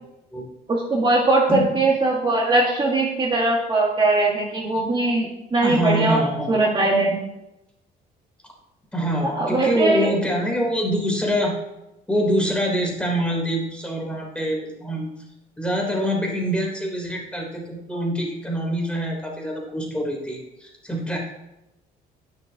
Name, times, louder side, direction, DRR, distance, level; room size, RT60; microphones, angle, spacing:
voice 1, 0.7-6.2 6.5-7.3 9.2-10.2, right 2 dB, 30° right, -3 dB, 1.9 m, -20 dB
voice 2, 1.5-1.8 5.6-6.5 8.9-11.6 12.1-15.1 15.6-21.2, equal, 5° left, -1 dB, 3.4 m, -25 dB
17.5 x 6.3 x 2.9 m, 0.91 s
cardioid pair, 110°, 17 cm